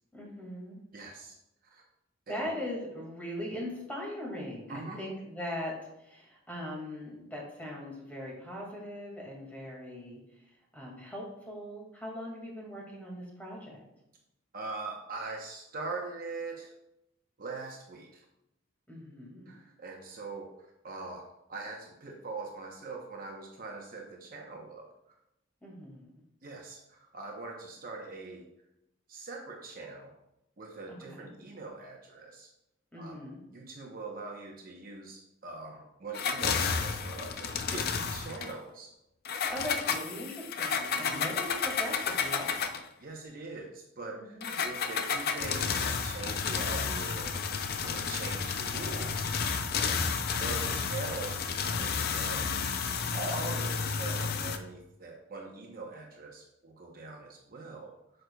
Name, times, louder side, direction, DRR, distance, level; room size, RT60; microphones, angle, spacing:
voice 1, 0.1-0.8 2.3-10.2 10.5-13.8 18.9-19.5 25.6-26.1 30.9-31.3 32.9-33.4 39.5-42.5 44.1-44.6 49.8-50.2, left 1 dB, 10° left, -3 dB, 2.1 m, -40 dB
voice 2, 0.9-1.3 1.7-1.8 2.3-2.5 4.7-5.0 14.5-16.7 17.4-18.2 19.5-21.2 21.5-24.9 26.4-28.4 29.1-30.1 30.6-32.5 33.0-33.2 33.5-38.9 40.9-41.3 43.0-47.4 47.8-49.3 49.7-50.0 50.3-52.5 53.1-57.9, right 3 dB, 45° right, 0 dB, 0.9 m, -42 dB
sound 1, 36.1-38.5 39.2-42.9 44.4-54.6, left 6 dB, 50° left, 0.5 m, -31 dB
8.5 x 6.6 x 2.3 m, 0.85 s
head